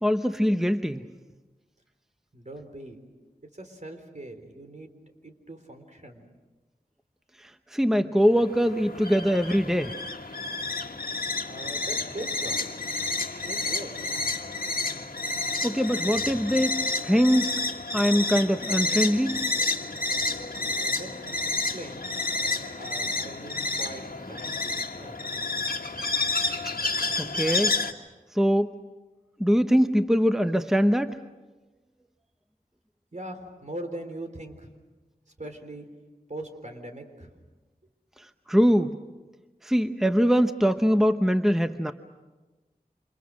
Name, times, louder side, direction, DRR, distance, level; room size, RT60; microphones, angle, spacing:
voice 1, 0.0-1.1 7.4-10.0 15.6-17.5 17.9-19.4 27.2-27.8 28.3-28.7 29.4-31.2 38.2-39.0 39.6-41.9, equal, 5° right, 8 dB, 0.9 m, -23 dB
voice 2, 2.3-3.0 3.5-4.9 5.2-6.3 11.4-12.9 13.4-14.1 20.5-22.1 22.8-24.0 24.3-25.6 33.1-34.7 35.4-35.9 36.3-37.3, right 1 dB, 50° right, 5 dB, 3.8 m, -41 dB
sound 1, 8.2-27.9, left 3 dB, 70° left, 1.7 m, -30 dB
29.0 x 28.0 x 6.3 m, 1.2 s
wide cardioid pair, 50°, 15 cm